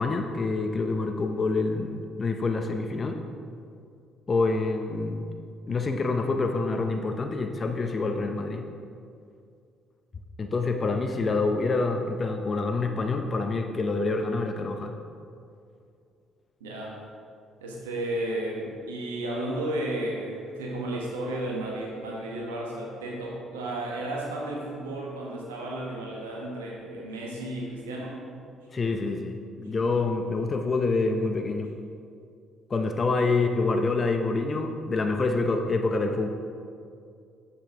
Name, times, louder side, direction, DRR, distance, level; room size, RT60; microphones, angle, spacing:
voice 1, 0.0-3.2 4.3-5.3 5.7-8.7 10.4-14.9 28.7-31.7 32.7-36.3, left 3 dB, 40° left, 4 dB, 0.6 m, -27 dB
voice 2, 16.6-17.0 17.6-28.2 33.1-33.3, right 1 dB, 90° right, -2 dB, 1.2 m, -33 dB
7.1 x 6.9 x 3.5 m, 2.4 s
hypercardioid pair, 55°, 0 cm